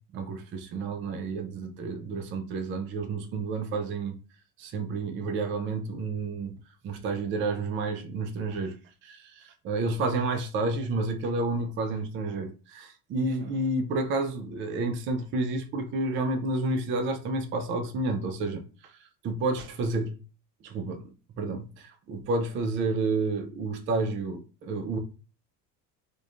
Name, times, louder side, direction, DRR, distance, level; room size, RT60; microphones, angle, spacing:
voice 1, 0.1-4.2 4.6-6.6 6.8-20.2 20.6-25.0, right 3 dB, 30° right, 0.4 m, -30 dB
2.5 x 2.2 x 2.3 m
hypercardioid pair, 70°, 48 cm